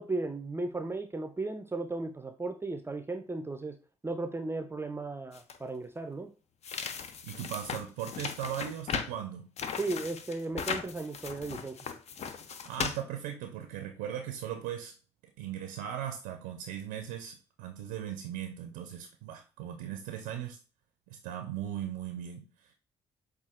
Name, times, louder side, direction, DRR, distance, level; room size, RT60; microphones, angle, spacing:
voice 1, 0.0-3.8 4.0-6.3 9.8-11.8, right 2 dB, 15° right, 7 dB, 0.5 m, -35 dB
sound 1, 5.3-5.6 6.6-9.2 9.6-13.0, left 6 dB, 50° left, 0.5 m, -37 dB
voice 2, 7.2-9.5 12.6-14.9 15.4-20.6 21.1-22.7, right 10 dB, 75° right, 5 dB, 0.5 m, -38 dB
5.5 x 2.4 x 2.4 m, 0.34 s
hypercardioid pair, 45°, 14 cm